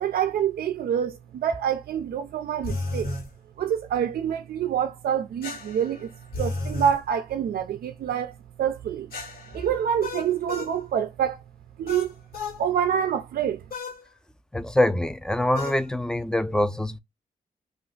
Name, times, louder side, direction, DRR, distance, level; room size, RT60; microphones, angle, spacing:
voice 1, 0.0-3.1 3.6-6.1 6.4-9.1 9.5-11.4 11.8-12.1 12.6-13.6, right 9 dB, 85° right, 0.4 m, -26 dB
sound 1, 2.6-3.3 5.4-7.0 9.1-10.8 11.9-12.6 13.7-14.0 15.5-15.8, left 2 dB, 75° left, 1.2 m, -33 dB
voice 2, 14.5-17.0, left 1 dB, 5° left, 0.4 m, -24 dB
2.4 x 2.4 x 3.7 m
cardioid pair, 75°, 15 cm